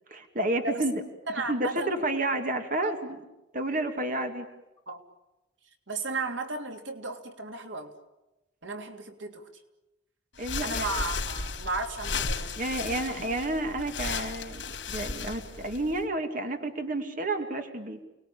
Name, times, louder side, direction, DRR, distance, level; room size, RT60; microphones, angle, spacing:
voice 1, 0.1-0.9 1.5-3.2 3.5-4.5 10.4-10.9 12.6-18.0, right 2 dB, 45° right, 5 dB, 2.4 m, -30 dB
voice 2, 1.3-1.9 2.8-3.0 4.9-5.0 5.9-7.9 8.6-9.5 10.6-12.8, right 3 dB, 85° right, 5 dB, 3.2 m, -34 dB
sound 1, 10.3-16.0, left 4 dB, 75° left, 3.3 m, -35 dB
29.5 x 20.5 x 8.7 m, 0.99 s
head